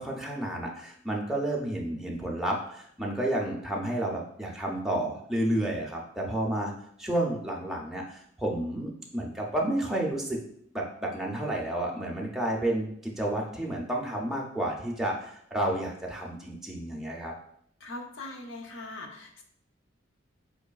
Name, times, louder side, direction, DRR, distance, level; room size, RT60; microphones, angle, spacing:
voice 1, 0.0-6.7 7.0-10.4 10.7-17.3, right 1 dB, ahead, -3 dB, 0.4 m, -31 dB
voice 2, 17.8-19.4, left 2 dB, 75° left, 3 dB, 0.6 m, -41 dB
3.8 x 2.9 x 2.3 m, 0.68 s
head